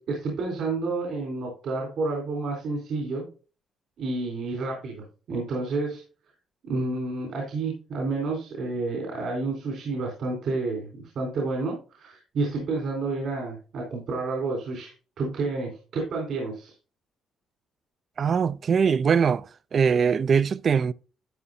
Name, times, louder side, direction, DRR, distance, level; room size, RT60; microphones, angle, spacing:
voice 1, 0.0-3.2 4.0-6.0 6.6-16.7, right 3 dB, 70° right, 3.8 m, -30 dB
voice 2, 18.2-19.5 19.7-20.9, right 6 dB, 50° right, 0.3 m, -22 dB
12.5 x 8.6 x 2.7 m
cardioid pair, 90°, 0 cm